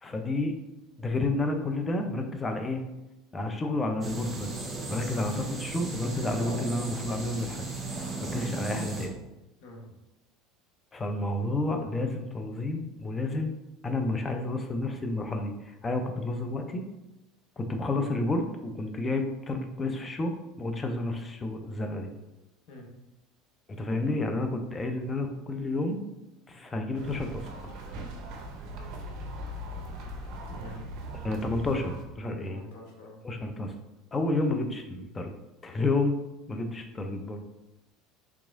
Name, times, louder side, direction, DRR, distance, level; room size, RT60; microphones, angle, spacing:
voice 1, 0.0-0.6 1.0-2.8 3.3-4.5 4.9-7.6 8.0-9.1 10.9-13.5 13.8-16.8 17.6-22.1 23.7-26.0 26.5-27.5 31.2-32.6 33.2-33.7 34.1-35.3 35.6-36.2 36.5-37.4, left 2 dB, 25° left, 5 dB, 0.5 m, -30 dB
sound 1, 4.0-9.1, right 3 dB, 20° right, 0.8 m, -36 dB
sound 2, 26.9-32.0, right 1 dB, 60° right, 0.5 m, -39 dB
voice 2, 30.5-31.0 32.4-33.2, left 1 dB, 65° left, -1 dB, 0.9 m, -46 dB
3.5 x 2.9 x 2.5 m, 0.96 s
hypercardioid pair, 80°, 0 cm